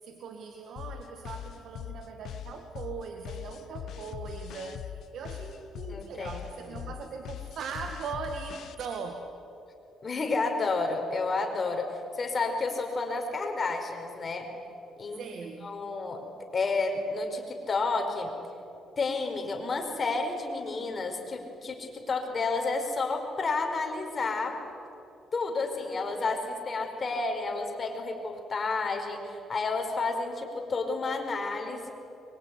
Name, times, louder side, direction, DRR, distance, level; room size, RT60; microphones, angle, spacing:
voice 1, 0.0-9.2 15.1-15.8, right 5 dB, 70° right, 4 dB, 2.1 m, -40 dB
sound 1, 0.8-8.8, left 10 dB, 70° left, 1.1 m, -41 dB
voice 2, 5.9-6.4 10.0-14.5 15.0-15.2 15.6-16.3 16.5-18.3 19.0-24.6 25.3-31.9, left 3 dB, 40° left, 4 dB, 5.0 m, -31 dB
24.0 x 23.5 x 9.8 m, 2.9 s
cardioid pair, 90°, 0 cm